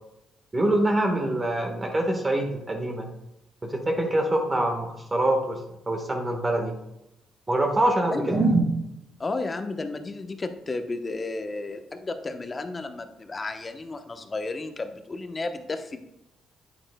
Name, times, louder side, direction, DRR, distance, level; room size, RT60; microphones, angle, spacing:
voice 1, 0.5-3.1 3.6-5.6 5.9-6.7 7.5-8.6, right 1 dB, 25° right, 2 dB, 1.3 m, -24 dB
voice 2, 8.1-8.7 9.2-16.0, left 3 dB, 30° left, 7 dB, 0.8 m, -33 dB
8.8 x 8.8 x 2.2 m, 0.89 s
cardioid pair, 90°, 0 cm